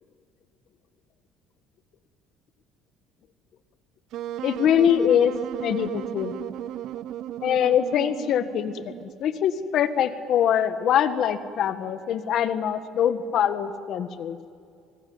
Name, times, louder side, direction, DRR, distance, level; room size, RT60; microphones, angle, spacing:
Wind instrument woodwind instrument, 4.1-9.2, right 12 dB, 60° right, 0.6 m, -35 dB
voice 1, 4.4-5.3 5.6-6.3 7.4-14.4, left 9 dB, 50° left, 10 dB, 1.5 m, -23 dB
25.5 x 20.5 x 9.5 m, 2.3 s
cardioid pair, 145°, 0 cm